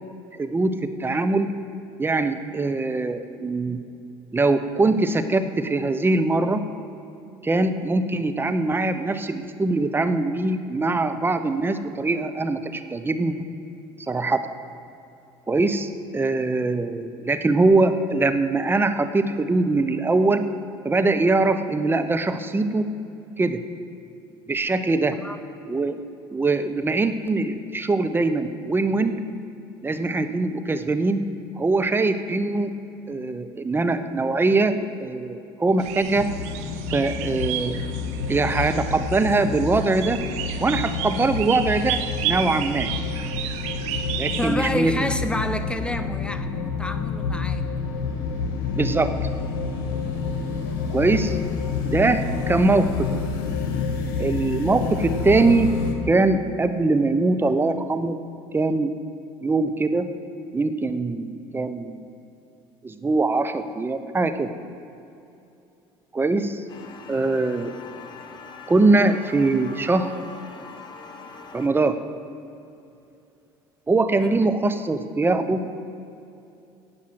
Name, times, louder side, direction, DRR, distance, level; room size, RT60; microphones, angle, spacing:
voice 1, 0.4-1.6 2.0-3.8 4.3-6.7 7.4-13.5 14.1-14.4 15.5-20.4 20.8-22.9 23.4-23.6 24.5-25.2 25.7-26.0 26.3-29.2 29.8-31.2 31.6-32.7 33.1-36.3 36.9-37.8 38.3-40.2 40.6-42.9 44.2-45.1 48.7-49.1 50.9-51.4 51.8-53.1 54.2-55.7 56.1-58.2 58.5-58.9 59.4-60.1 60.5-62.1 62.8-64.5 66.1-66.6 67.1-67.7 68.7-70.2 71.5-72.0 73.9-75.7, right 3 dB, 20° right, 9 dB, 0.9 m, -22 dB
sound 1, 35.8-44.6, right 10 dB, 70° right, 0.9 m, -32 dB
sound 2, 36.1-55.9, left 5 dB, 75° left, 1.5 m, -29 dB
voice 2, 44.4-47.6 74.2-74.4, left 1 dB, 10° left, 10 dB, 0.9 m, -29 dB
sound 3, 66.7-71.7, left 4 dB, 40° left, 1.4 m, -42 dB
17.0 x 5.8 x 7.7 m, 2.7 s
supercardioid pair, 85°, 12 cm